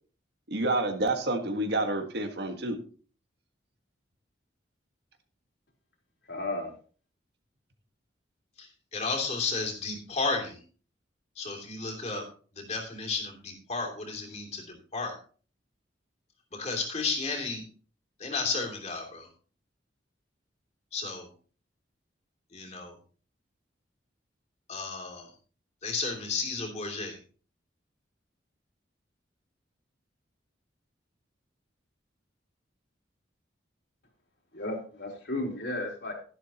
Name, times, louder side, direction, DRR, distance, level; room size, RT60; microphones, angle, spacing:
voice 1, 0.5-2.8, right 2 dB, 60° right, 6 dB, 1.6 m, -28 dB
voice 2, 6.3-6.7 34.5-36.1, left 2 dB, 65° left, -1 dB, 3.6 m, -34 dB
voice 3, 8.6-10.6 11.4-12.3 12.5-15.2 16.5-17.7 18.2-19.3 20.9-21.3 22.5-22.9 24.7-25.3 25.8-27.2, left 4 dB, 35° left, 1 dB, 2.9 m, -33 dB
12.0 x 11.5 x 2.9 m, 0.41 s
head